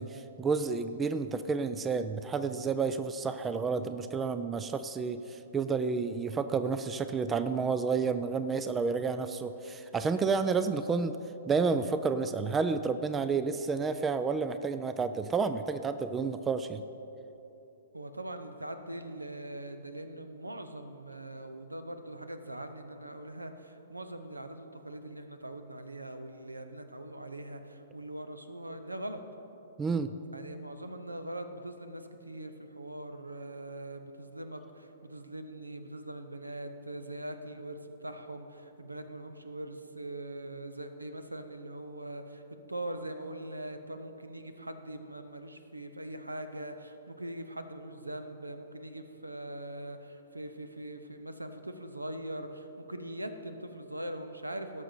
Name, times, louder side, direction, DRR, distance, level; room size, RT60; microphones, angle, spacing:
voice 1, 0.0-11.2 11.5-16.8 29.8-30.1, right 5 dB, 15° right, 11 dB, 0.4 m, -30 dB
voice 2, 17.9-29.2 30.3-42.4 42.7-54.8, right 1 dB, 80° right, 8 dB, 0.8 m, -42 dB
17.5 x 6.5 x 4.4 m, 3.0 s
figure-of-eight pair, 115°, 0 cm